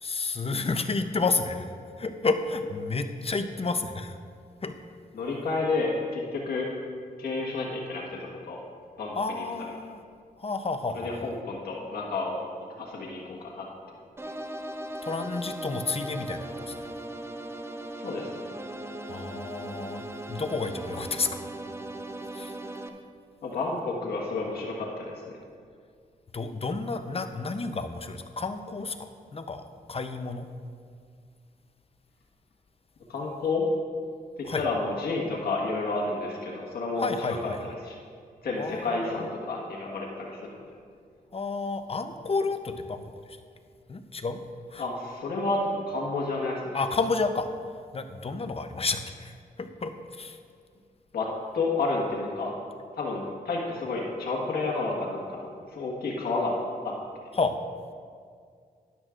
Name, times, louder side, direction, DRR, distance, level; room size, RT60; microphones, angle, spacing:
voice 1, 0.0-1.7 2.0-4.2 4.6-4.7 9.2-10.0 10.4-11.3 15.0-16.9 19.1-21.5 22.3-22.5 26.3-30.5 34.5-34.6 37.0-37.7 38.6-39.3 41.3-43.4 43.9-44.4 44.7-44.8 46.7-47.5 47.9-50.4 57.4-57.6, left 3 dB, 40° left, 8 dB, 0.7 m, -31 dB
voice 2, 5.1-6.7 7.2-8.6 9.0-9.4 10.9-12.4 12.8-13.7 18.0-18.5 22.6-22.8 23.4-25.4 33.1-33.6 34.6-37.4 37.8-38.0 38.4-40.6 44.8-46.8 51.1-51.3 51.5-52.5 53.0-56.6 56.8-56.9, left 3 dB, 80° left, -3 dB, 1.6 m, -30 dB
sound 1, 14.2-22.9, right 1 dB, 15° right, 0.7 m, -38 dB
13.0 x 10.5 x 2.5 m, 2.2 s
cardioid pair, 60°, 16 cm